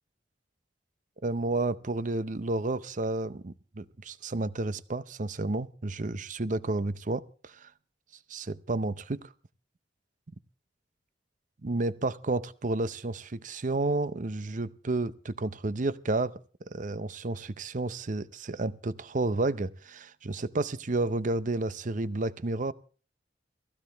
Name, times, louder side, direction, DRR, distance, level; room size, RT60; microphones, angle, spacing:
voice 1, 1.2-7.7 8.3-9.3 11.6-16.4 16.7-22.7, right 2 dB, 45° right, 0.7 m, -31 dB
19.0 x 15.0 x 3.4 m
head